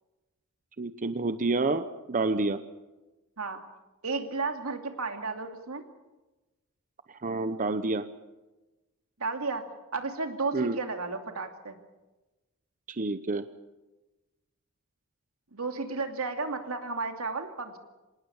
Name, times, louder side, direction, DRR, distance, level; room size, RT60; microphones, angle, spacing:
voice 1, 0.8-2.6 7.2-8.0 10.5-10.8 13.0-13.5, right 3 dB, 40° right, 11 dB, 0.8 m, -28 dB
voice 2, 4.0-5.8 9.2-9.6 9.9-11.8 15.5-17.8, right 4 dB, 85° right, 5 dB, 2.6 m, -33 dB
26.0 x 19.0 x 7.1 m, 1.1 s
head